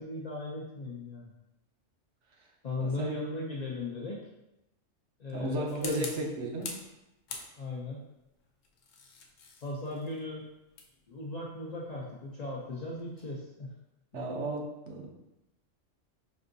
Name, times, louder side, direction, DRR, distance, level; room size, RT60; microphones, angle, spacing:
voice 1, 0.0-1.3 2.6-4.2 5.2-6.1 7.6-8.0 9.6-10.5 11.1-13.7, left 2 dB, 60° left, -4 dB, 0.4 m, -37 dB
voice 2, 2.8-3.2 5.3-6.7 14.1-15.1, right 1 dB, 65° right, 0 dB, 0.9 m, -34 dB
sound 1, 5.7-6.9 7.3-7.9 8.6-13.4, left 4 dB, 80° left, 1.0 m, -45 dB
5.2 x 2.6 x 2.6 m, 0.93 s
omnidirectional pair, 1.3 m